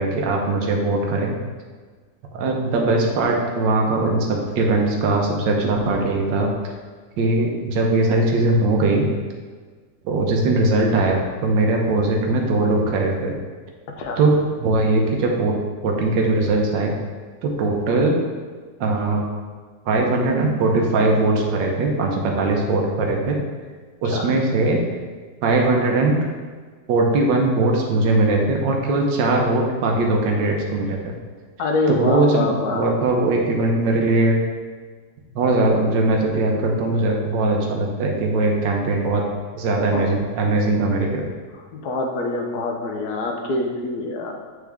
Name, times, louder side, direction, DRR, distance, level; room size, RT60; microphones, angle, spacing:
voice 1, 0.0-1.4 2.3-6.7 7.2-9.1 10.0-13.4 14.2-15.6 15.8-16.9 17.4-18.2 18.8-19.2 19.9-23.4 24.0-24.8 25.4-26.3 26.9-31.2 31.9-34.4 35.3-39.2 39.5-41.2, right 2 dB, 75° right, 0 dB, 1.5 m, -20 dB
voice 2, 31.6-32.8 39.9-40.1 41.7-44.3, left 2 dB, 65° left, 2 dB, 1.2 m, -25 dB
8.0 x 3.7 x 3.5 m, 1.5 s
omnidirectional pair, 2.0 m